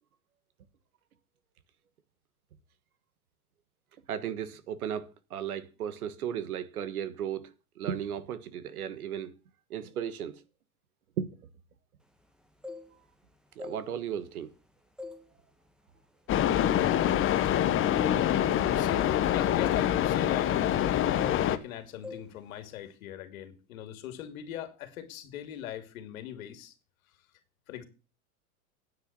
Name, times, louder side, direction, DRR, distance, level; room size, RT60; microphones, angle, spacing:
voice 1, 4.1-9.3 9.7-10.4 11.2-11.3 13.5-14.5, right 9 dB, 90° right, 1.5 m, -35 dB
sound 1, 12.4-13.2 13.5-14.6 15.0-15.3 15.7-15.9 16.5-16.7 17.0-20.9 21.2-21.7 22.0-22.3 22.6-22.9, left 3 dB, ahead, 1.4 m, -46 dB
sound 2, 16.3-21.6, left 11 dB, 30° left, 1.0 m, -25 dB
voice 2, 18.7-20.9 21.5-26.7 27.7-27.8, left 10 dB, 70° left, 2.6 m, -40 dB
9.6 x 6.4 x 8.1 m
hypercardioid pair, 120°, 42 cm